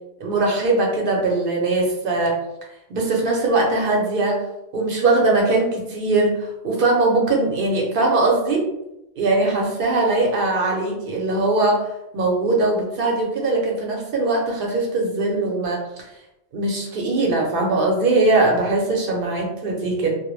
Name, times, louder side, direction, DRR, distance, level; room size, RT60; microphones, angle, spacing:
voice 1, 0.2-2.4 2.9-4.4 4.7-8.6 9.2-11.9 12.1-15.8 16.5-20.1, right 2 dB, 60° right, 0 dB, 0.7 m, -20 dB
2.1 x 2.0 x 3.0 m, 0.88 s
omnidirectional pair, 1.1 m